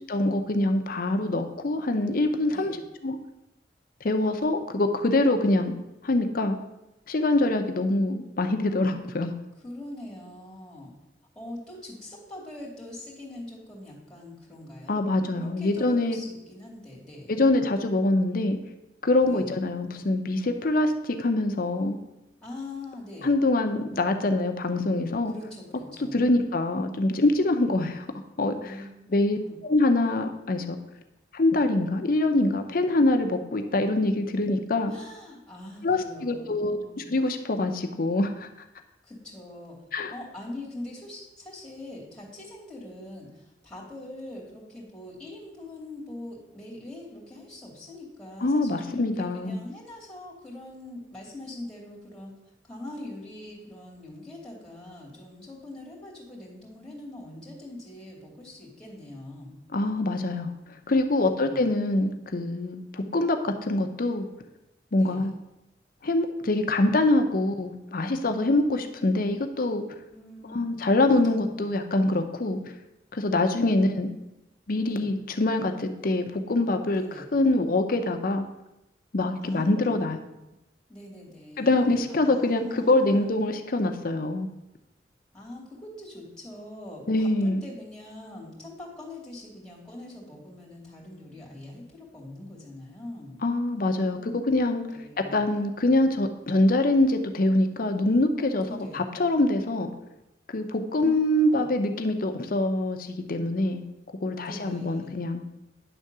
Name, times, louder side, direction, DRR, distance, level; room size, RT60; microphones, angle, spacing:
voice 1, 0.1-2.8 3.0-3.2 4.0-5.8 6.0-6.6 7.1-9.3 14.9-16.2 17.3-18.6 19.0-22.0 23.2-25.3 26.0-28.1 28.4-28.8 29.1-30.8 31.3-34.9 35.8-38.5 39.9-40.1 48.4-49.6 59.7-60.5 60.9-64.3 64.9-65.3 66.0-69.8 70.5-72.6 73.1-74.1 74.7-77.0 77.3-78.5 79.1-80.2 81.6-84.5 87.1-87.6 93.4-94.8 95.2-99.9 100.5-103.8 104.2-105.4, left 2 dB, 55° left, 6 dB, 0.7 m, -24 dB
voice 2, 9.6-10.9 11.3-15.0 15.4-17.3 19.3-19.5 22.4-23.3 25.3-26.2 28.6-29.6 34.9-37.1 39.0-39.8 40.1-52.3 52.6-59.6 61.3-61.7 65.0-65.3 70.1-70.8 71.1-71.5 74.9-75.1 76.9-77.2 79.4-80.2 80.9-83.3 85.3-93.4 94.1-94.4 94.9-95.6 98.6-99.1 101.0-101.7 104.5-105.1, left 1 dB, 5° left, -5 dB, 2.6 m, -43 dB
10.0 x 3.7 x 6.7 m, 0.92 s
head